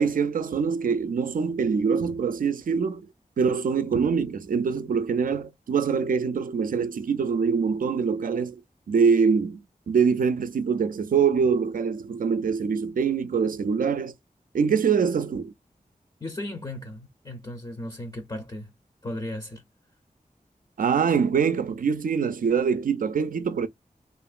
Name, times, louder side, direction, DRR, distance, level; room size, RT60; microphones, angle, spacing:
voice 1, 0.0-3.1 3.4-8.6 8.9-14.1 14.5-15.5 20.8-23.7, right 6 dB, 65° right, 0.4 m, -24 dB
voice 2, 16.2-18.7 19.0-19.6, left 1 dB, 25° left, 0.5 m, -36 dB
2.8 x 2.4 x 2.4 m
wide cardioid pair, 55°, 15 cm